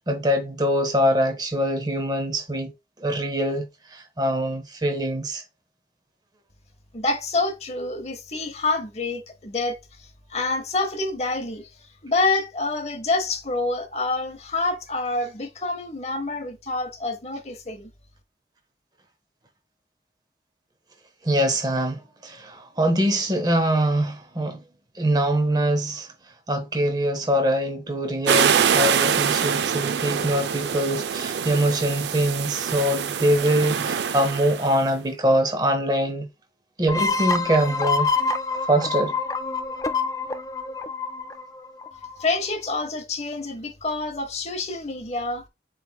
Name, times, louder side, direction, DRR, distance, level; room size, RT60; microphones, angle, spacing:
voice 1, 0.1-2.7 3.0-5.4 21.2-24.6 24.9-26.1 26.5-36.3 36.8-38.1 38.7-39.2, right 1 dB, 20° right, 0.7 m, -23 dB
voice 2, 6.9-11.7 12.0-17.9 42.2-45.4, left 3 dB, 35° left, 0.8 m, -27 dB
sound 1, 28.3-34.8, right 7 dB, 70° right, 0.4 m, -24 dB
sound 2, 36.9-42.3, left 4 dB, 20° left, 0.3 m, -26 dB
7.5 x 3.1 x 2.2 m
head